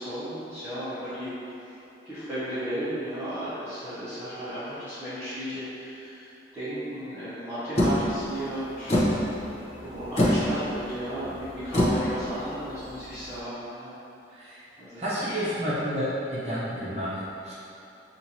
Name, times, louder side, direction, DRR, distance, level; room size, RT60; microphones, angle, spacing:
voice 1, 0.0-1.5 2.0-9.0 9.4-9.5 9.8-13.9 14.8-15.4, equal, 10° right, -17 dB, 1.1 m, -34 dB
sound 1, 7.8-13.4, equal, 35° left, 0.7 m, -27 dB
voice 2, 14.3-14.7 15.0-17.5, equal, 35° right, -10 dB, 0.9 m, -30 dB
5.7 x 2.6 x 2.9 m, 2.9 s
head